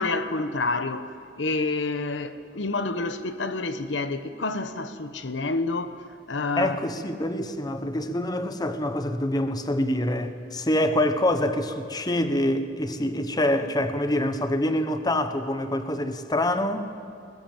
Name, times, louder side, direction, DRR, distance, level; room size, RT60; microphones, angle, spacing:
voice 1, 0.0-6.0 6.3-6.8, left 3 dB, 80° left, 1.1 m, -28 dB
voice 2, 6.6-16.9, left 1 dB, 20° left, 1.1 m, -26 dB
21.0 x 20.5 x 7.8 m
head